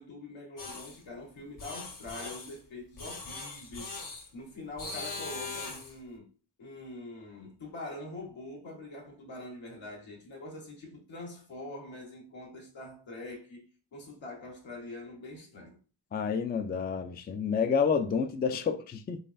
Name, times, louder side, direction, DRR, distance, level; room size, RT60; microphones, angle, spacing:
voice 1, 0.0-3.9 4.3-6.3 6.6-13.6 13.9-15.8, left 2 dB, 75° left, 1.6 m, -44 dB
sound 1, 0.6-1.0 1.6-2.6 3.0-4.3 4.8-6.0, left 3 dB, 45° left, 1.0 m, -40 dB
voice 2, 16.1-19.2, left 6 dB, 25° left, 0.3 m, -29 dB
3.9 x 3.2 x 2.6 m
cardioid pair, 65°, 46 cm